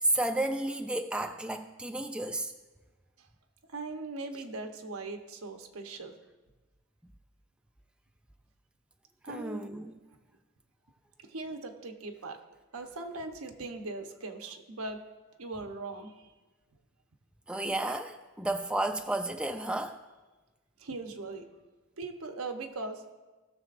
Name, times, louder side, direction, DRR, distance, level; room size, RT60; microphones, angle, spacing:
voice 1, 0.0-2.5 9.3-9.9 17.5-20.0, right 2 dB, 5° right, 6 dB, 0.3 m, -32 dB
voice 2, 3.7-6.1 9.2-9.7 11.2-12.4 12.7-15.0 15.4-16.3 20.8-21.4 22.0-23.0, right 3 dB, 90° right, 5 dB, 0.9 m, -39 dB
17.5 x 6.8 x 2.5 m, 1.2 s
head